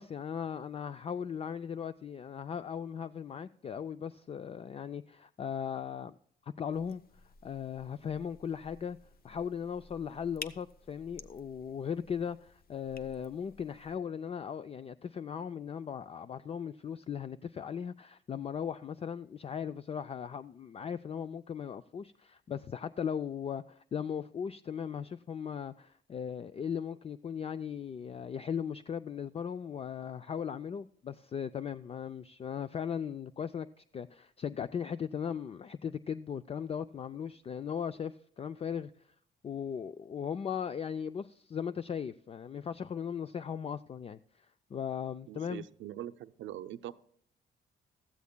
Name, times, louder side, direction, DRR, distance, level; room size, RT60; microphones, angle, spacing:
voice 1, 0.0-6.1 6.4-7.0 7.4-9.0 9.2-38.9 39.4-44.5 44.7-45.6, left 7 dB, 30° left, 0.3 m, -38 dB
sound 1, 6.7-14.0, left 5 dB, 50° left, 0.7 m, -52 dB
voice 2, 45.3-46.9, right 12 dB, 75° right, 0.6 m, -42 dB
15.5 x 14.0 x 2.2 m
cardioid pair, 90°, 20 cm